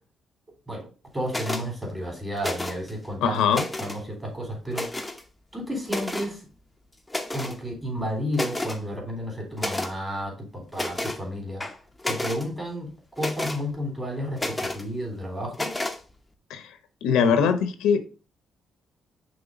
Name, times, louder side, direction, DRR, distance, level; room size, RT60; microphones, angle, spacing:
voice 1, 1.1-3.4 3.8-4.9 5.5-6.4 7.3-11.6 12.0-15.7, equal, 15° right, 0 dB, 3.5 m, -32 dB
sound 1, 1.3-1.7 2.4-2.9 3.3-4.0 4.7-5.2 5.9-6.3 7.1-7.6 8.0-8.1 8.3-8.8 9.6-9.9 10.7-11.2 11.6-12.4 13.2-13.6 14.4-14.8 15.5-16.0, left 1 dB, 10° left, 0.9 m, -31 dB
voice 2, 3.2-3.6 16.5-16.7 17.0-18.1, left 6 dB, 90° left, 10 dB, 0.8 m, -22 dB
6.0 x 3.3 x 5.1 m, 0.35 s
cardioid pair, 90°, 0 cm